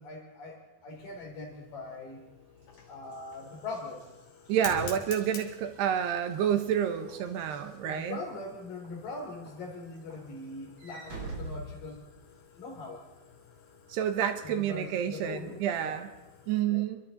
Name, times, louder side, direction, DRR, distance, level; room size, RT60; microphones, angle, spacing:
voice 1, 0.0-2.3 2.9-4.1 7.8-12.1 12.6-13.0 14.4-16.0 16.7-16.8, left 3 dB, 55° left, 2 dB, 4.4 m, -41 dB
Fire, 0.9-16.6, left 6 dB, 75° left, 4.9 m, -50 dB
Walk footsteps / Slam, 2.6-8.3 8.8-9.1 9.5-12.5, right 2 dB, 30° right, 8.0 m, -47 dB
voice 2, 4.5-8.2 13.9-16.1 16.5-17.0, right 9 dB, 75° right, 8 dB, 3.1 m, -29 dB
29.0 x 24.0 x 4.1 m, 1.1 s
omnidirectional pair, 5.1 m